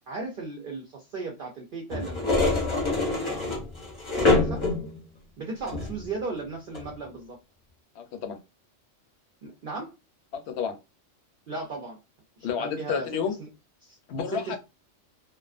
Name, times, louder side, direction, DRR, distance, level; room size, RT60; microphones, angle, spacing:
voice 1, 0.1-3.5 4.3-4.6 5.4-7.4 9.4-9.9 11.5-12.0 12.4-13.1 13.4-13.5 13.8-14.0 14.3-14.6, right 3 dB, 55° right, 0.6 m, -36 dB
sound 1, 1.9-5.0 5.7-6.0 6.7-6.9, left 3 dB, 30° left, 0.6 m, -25 dB
voice 2, 8.0-8.4 10.3-10.8 12.4-13.4 14.1-14.6, left 7 dB, 70° left, 0.8 m, -30 dB
2.3 x 2.3 x 2.4 m
omnidirectional pair, 1.3 m